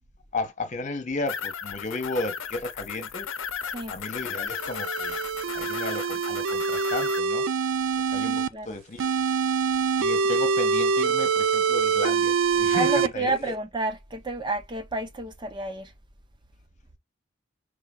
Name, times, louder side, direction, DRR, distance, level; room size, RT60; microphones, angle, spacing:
voice 1, 0.3-3.3 3.9-5.2 5.5-7.5 8.1-9.2 10.0-13.5, left 2 dB, 40° left, 1.2 m, -34 dB
sound 1, 1.3-7.2, left 7 dB, 85° left, 0.7 m, -35 dB
sound 2, 4.6-8.5 9.0-13.1, right 5 dB, 85° right, 0.5 m, -25 dB
voice 2, 8.2-8.7 12.7-15.9, right 2 dB, 25° right, 0.6 m, -30 dB
5.0 x 3.7 x 2.3 m
head